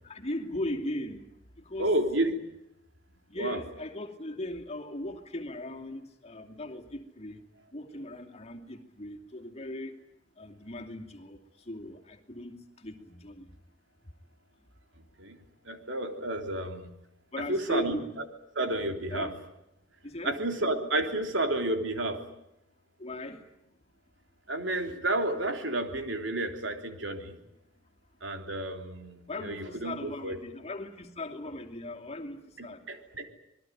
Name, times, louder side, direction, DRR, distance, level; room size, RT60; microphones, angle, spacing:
voice 1, 0.0-1.2 1.7-1.9 3.3-7.4 7.7-10.0 10.4-11.4 11.7-12.5 12.8-13.5 17.3-18.0 19.1-19.3 20.0-20.4 23.0-23.4 29.3-32.8, left 1 dB, 35° left, 3 dB, 2.7 m, -38 dB
voice 2, 1.8-2.3 3.4-3.6 15.2-15.4 15.7-16.9 17.4-18.0 18.6-19.3 20.2-22.2 24.5-27.4 28.2-30.4 32.6-33.3, right 1 dB, 70° right, 5 dB, 3.5 m, -31 dB
27.0 x 21.0 x 9.2 m, 0.82 s
head